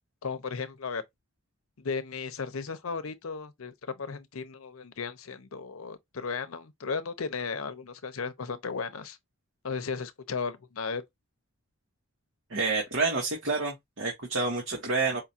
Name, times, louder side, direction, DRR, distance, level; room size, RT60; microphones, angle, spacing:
voice 1, 0.2-1.0 1.8-9.2 9.6-11.0, left 5 dB, 75° left, 0.7 m, -35 dB
voice 2, 12.5-15.2, right 3 dB, 65° right, 1.3 m, -28 dB
4.9 x 2.4 x 2.7 m
head